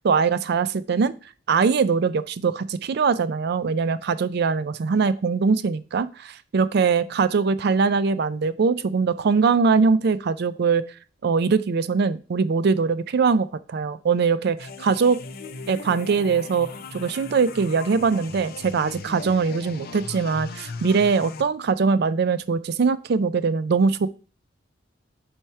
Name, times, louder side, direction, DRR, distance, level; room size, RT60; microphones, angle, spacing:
voice 1, 0.0-1.1 1.5-10.8 11.2-15.2 15.7-24.1, right 5 dB, 55° right, 15 dB, 0.4 m, -22 dB
sound 1, 14.6-21.4, left 4 dB, 50° left, 0.5 m, -38 dB
4.7 x 4.4 x 5.5 m, 0.37 s
head